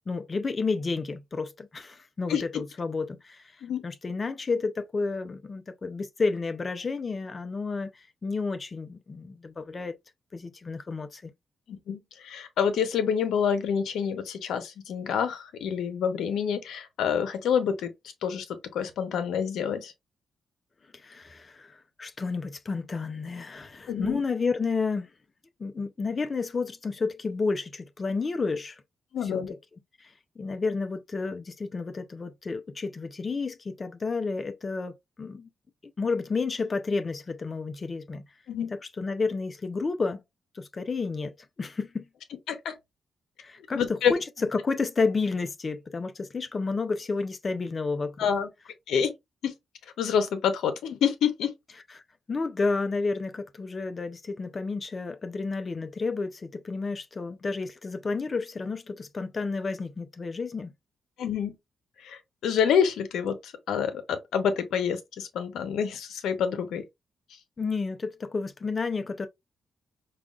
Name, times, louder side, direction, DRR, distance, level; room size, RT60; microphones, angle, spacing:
voice 1, 0.1-3.6 3.8-10.0 10.3-11.2 20.9-25.1 25.6-28.8 29.2-29.4 30.0-35.5 36.0-38.2 39.0-40.2 40.5-41.3 41.6-42.1 43.4-44.2 44.5-48.3 52.3-60.7 67.6-69.3, left 4 dB, 35° left, 0.5 m, -31 dB
voice 2, 11.9-17.9 18.2-18.4 18.7-19.9 23.9-24.2 29.1-29.5 38.5-38.7 42.5-42.8 43.7-44.1 48.2-48.5 48.9-49.1 49.4-49.5 50.0-51.5 61.2-61.6 62.0-66.8, left 7 dB, 85° left, 0.7 m, -27 dB
4.9 x 2.3 x 2.4 m
cardioid pair, 90°, 0 cm